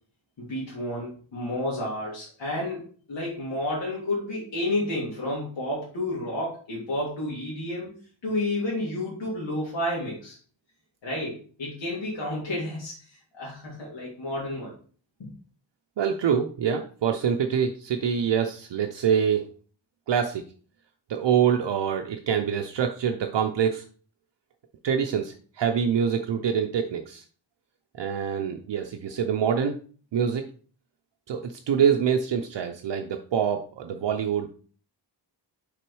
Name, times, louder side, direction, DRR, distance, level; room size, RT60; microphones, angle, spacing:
voice 1, 0.4-7.9 8.2-10.4 11.0-13.0 13.3-14.7 15.2-15.3, left 1 dB, 70° left, -6 dB, 2.2 m, -31 dB
voice 2, 16.0-19.4 20.1-20.4 21.1-23.8 24.8-27.2 28.0-29.8 30.1-30.4 31.3-34.5, right 7 dB, 70° right, 4 dB, 0.6 m, -25 dB
6.0 x 3.8 x 4.7 m, 0.42 s
wide cardioid pair, 165°, 45 cm